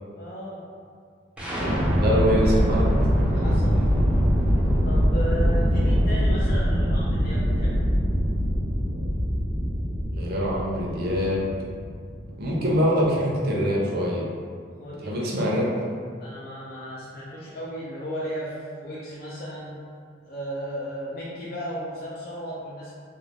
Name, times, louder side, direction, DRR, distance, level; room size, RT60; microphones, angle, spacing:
voice 1, 0.2-0.6 1.4-2.0 3.3-3.9 4.8-7.9 14.8-15.4 16.2-19.8 20.2-22.9, equal, 55° left, -8 dB, 0.5 m, -35 dB
sound 1, 1.4-13.2, equal, 5° right, 0.5 m, -23 dB
voice 2, 2.0-2.9 10.2-11.4 12.4-14.3 15.0-15.7, equal, 55° right, -4 dB, 0.6 m, -24 dB
2.4 x 2.1 x 3.3 m, 2.2 s
head